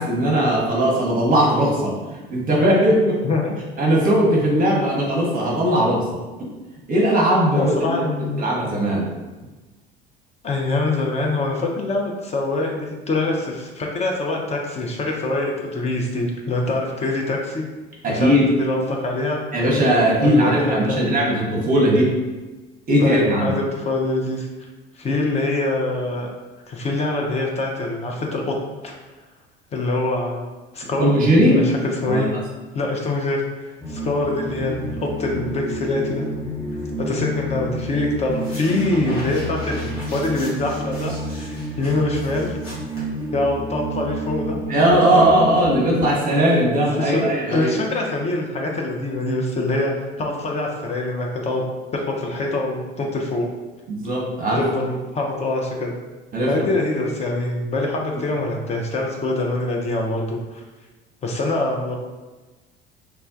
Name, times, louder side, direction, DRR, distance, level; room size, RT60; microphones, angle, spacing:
voice 1, 0.0-3.2 3.8-6.2 6.9-7.9 8.4-9.1 18.0-18.5 19.5-22.1 22.9-23.5 31.0-31.6 32.1-32.3 44.7-47.7 53.9-54.6 56.3-56.6, right 1 dB, 30° right, -3 dB, 0.7 m, -18 dB
voice 2, 3.2-3.6 7.5-8.5 10.4-17.7 18.1-19.4 20.2-21.1 23.0-24.7 25.0-26.3 26.7-28.5 28.8-29.0 29.7-30.5 30.7-31.1 31.5-32.3 32.7-36.3 37.0-42.6 43.3-44.6 45.1-45.4 47.0-51.6 51.9-53.5 54.5-55.9 56.5-60.6 61.2-62.0, left 2 dB, 20° left, 0 dB, 0.4 m, -24 dB
sound 1, 33.8-46.1, right 1 dB, 5° left, 1.0 m, -30 dB
sound 2, 38.3-43.6, equal, 80° left, 1.1 m, -38 dB
3.2 x 2.1 x 2.4 m, 1.2 s
figure-of-eight pair, 60°, 30 cm